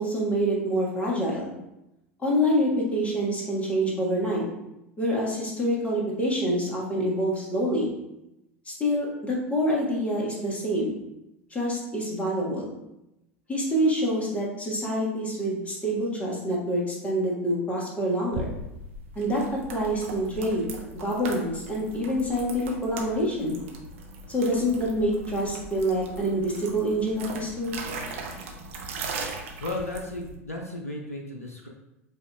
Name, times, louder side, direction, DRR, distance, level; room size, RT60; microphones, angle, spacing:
voice 1, 0.0-1.5 2.2-4.4 5.0-7.9 8.6-10.9 11.5-12.7 13.5-18.5 19.1-23.6 24.3-27.8, equal, 15° left, -3 dB, 1.5 m, -26 dB
sound 1, 18.3-30.4, right 3 dB, 65° right, 0.7 m, -39 dB
voice 2, 29.6-31.7, left 2 dB, 85° left, 1 dB, 0.5 m, -34 dB
7.8 x 2.8 x 2.3 m, 0.89 s
figure-of-eight pair, 75°, 8 cm